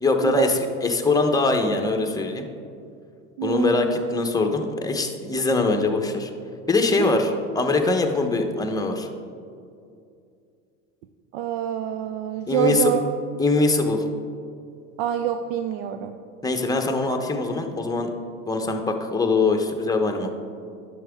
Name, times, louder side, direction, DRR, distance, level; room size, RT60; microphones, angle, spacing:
voice 1, 0.0-2.5 3.4-6.3 6.7-9.1 12.5-12.9 13.4-14.0 16.4-18.1 18.5-20.3, left 3 dB, 10° left, 3 dB, 1.0 m, -22 dB
voice 2, 3.4-3.9 7.0-7.2 11.3-13.0 15.0-16.2, right 10 dB, 65° right, 7 dB, 0.6 m, -26 dB
10.5 x 7.0 x 3.6 m, 2.4 s
hypercardioid pair, 85°, 37 cm